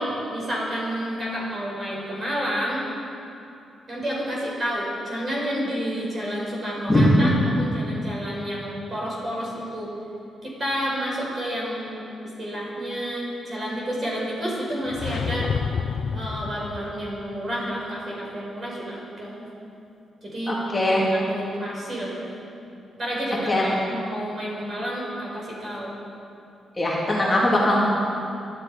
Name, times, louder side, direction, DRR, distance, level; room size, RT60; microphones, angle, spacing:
voice 1, 0.0-2.9 3.9-9.9 10.4-12.0 12.4-15.5 16.1-19.5 20.2-20.6 21.1-22.4 23.0-26.0, equal, 30° right, -4 dB, 5.2 m, -30 dB
voice 2, 6.9-7.5 20.5-21.0 23.5-23.7 26.8-27.9, left 1 dB, 15° left, -6 dB, 2.5 m, -20 dB
sound 1, 14.9-17.1, left 6 dB, 55° left, 0.6 m, -29 dB
23.5 x 12.5 x 4.9 m, 2.7 s
wide cardioid pair, 155°, 0 cm